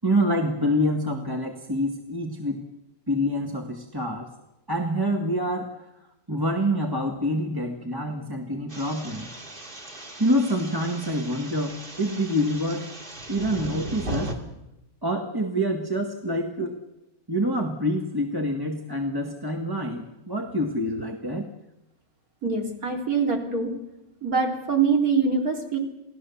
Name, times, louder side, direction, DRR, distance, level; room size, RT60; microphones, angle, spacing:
voice 1, 0.0-2.6 3.1-4.3 4.7-5.8 6.3-9.3 10.2-12.9 13.3-14.3 15.0-16.8 17.3-21.5, equal, 15° right, 3 dB, 1.6 m, -26 dB
sound 1, 8.7-14.3, right 1 dB, 35° right, 2.7 m, -37 dB
voice 2, 22.4-23.7 24.2-25.8, right 5 dB, 75° right, 1 dB, 4.1 m, -24 dB
28.5 x 18.0 x 7.1 m, 0.93 s
omnidirectional pair, 1.5 m